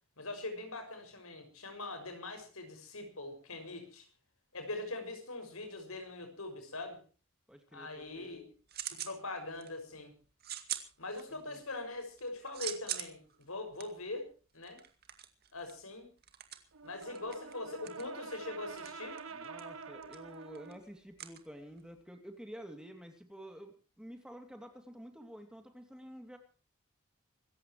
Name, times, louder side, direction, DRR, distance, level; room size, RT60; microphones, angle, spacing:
voice 1, 0.2-4.1 4.5-7.0 7.7-8.5 8.9-10.1 11.0-14.3 14.5-14.8 15.5-16.1 16.8-19.2, left 2 dB, 85° left, 7 dB, 6.2 m, -42 dB
voice 2, 7.5-8.4 11.3-11.6 19.3-26.4, equal, 5° right, 5 dB, 2.6 m, -50 dB
sound 1, 8.0-9.2 9.5-10.0 10.4-11.6 12.0-22.0, right 11 dB, 45° right, 2.2 m, -44 dB
Brass instrument, 16.7-20.9, right 5 dB, 75° right, 1.6 m, -47 dB
26.0 x 15.0 x 3.1 m, 0.37 s
head